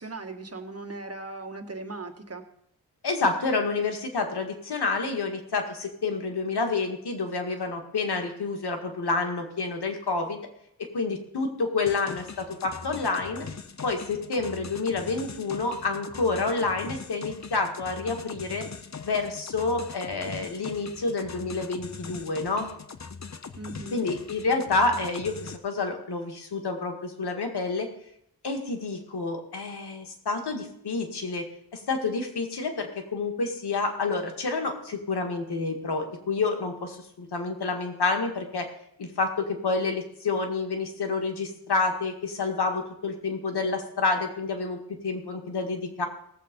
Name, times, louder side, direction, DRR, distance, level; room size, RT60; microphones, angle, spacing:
voice 1, 0.0-2.5 23.6-24.1, right 3 dB, 40° right, 4 dB, 1.8 m, -38 dB
voice 2, 3.0-10.4 10.9-13.5 13.8-18.7 19.0-22.7 23.9-27.9 28.4-31.5 31.7-38.7 39.0-46.1, left 3 dB, 85° left, 4 dB, 2.0 m, -29 dB
sound 1, 11.9-25.6, left 5 dB, 45° left, 0.9 m, -41 dB
17.5 x 7.6 x 5.3 m, 0.74 s
cardioid pair, 70°, 39 cm